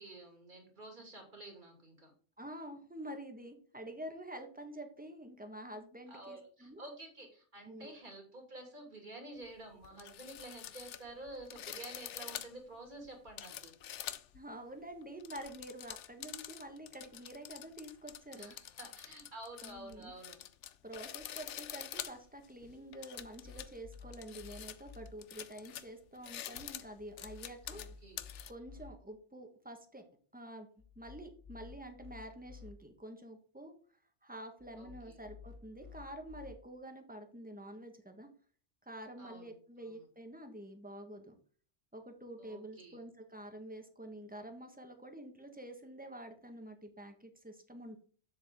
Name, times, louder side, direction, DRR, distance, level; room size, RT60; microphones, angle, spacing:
voice 1, 0.0-2.1 6.1-13.7 18.4-20.4 27.7-28.2 34.8-35.2 39.2-39.5 39.8-40.0 42.4-43.0, right 2 dB, 45° right, 2 dB, 2.6 m, -50 dB
voice 2, 2.4-6.9 7.6-7.9 14.3-18.6 19.6-20.1 20.8-27.8 28.5-30.0 30.3-30.7 31.0-33.7 34.2-38.3 38.8-41.3 41.9-48.0, right 1 dB, 10° right, 5 dB, 1.3 m, -48 dB
sound 1, 9.4-9.5 9.8-14.4 15.0-28.5, left 11 dB, 80° left, 0.9 m, -47 dB
sound 2, 23.2-25.1 27.0-28.9 30.8-32.7 34.6-36.5, left 6 dB, 30° left, 1.7 m, -54 dB
7.3 x 7.1 x 3.6 m, 0.44 s
omnidirectional pair, 1.2 m